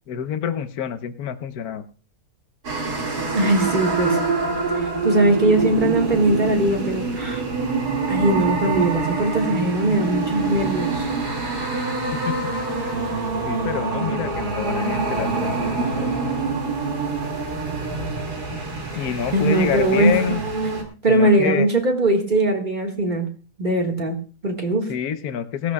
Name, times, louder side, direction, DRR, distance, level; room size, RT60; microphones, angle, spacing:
voice 1, 0.1-1.8 12.2-12.5 13.4-16.1 18.9-20.4 21.1-21.7 24.9-25.7, left 8 dB, 70° left, 11 dB, 1.4 m, -27 dB
sound 1, 2.6-20.8, right 3 dB, 80° right, 2.9 m, -25 dB
voice 2, 3.3-4.2 4.7-7.4 8.1-11.1 19.3-20.2 21.0-23.3 23.6-24.9, right 1 dB, 30° right, 2 dB, 1.9 m, -20 dB
18.5 x 13.0 x 2.3 m, 0.36 s
omnidirectional pair, 1.7 m